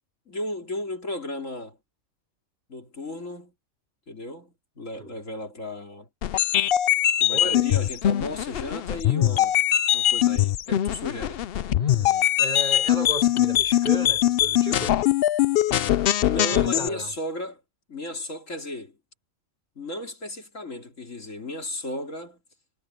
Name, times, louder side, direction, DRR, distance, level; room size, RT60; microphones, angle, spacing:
voice 1, 0.3-1.8 2.7-3.5 4.1-6.1 7.2-9.6 9.9-11.4 16.3-17.6 17.9-19.0 19.8-22.4, left 1 dB, 75° left, 3.9 m, -35 dB
sound 1, 6.2-16.9, left 12 dB, 60° left, 0.7 m, -22 dB
voice 2, 7.3-7.7 11.7-15.0 16.4-17.1, equal, 35° right, 3.7 m, -34 dB
omnidirectional pair, 1.3 m